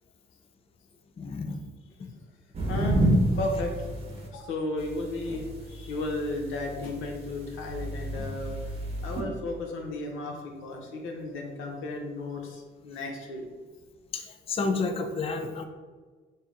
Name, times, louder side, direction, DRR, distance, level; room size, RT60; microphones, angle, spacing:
voice 1, 1.2-1.6 14.1-15.7, left 3 dB, 30° left, 5 dB, 0.4 m, -30 dB
sound 1, 2.5-4.3 4.8-9.2, right 1 dB, 30° right, 1.0 m, -30 dB
voice 2, 2.7-3.1 3.4-3.7 4.2-13.5, left 2 dB, 85° left, 1 dB, 0.7 m, -34 dB
3.2 x 2.8 x 3.6 m, 1.4 s
cardioid pair, 90°, 20 cm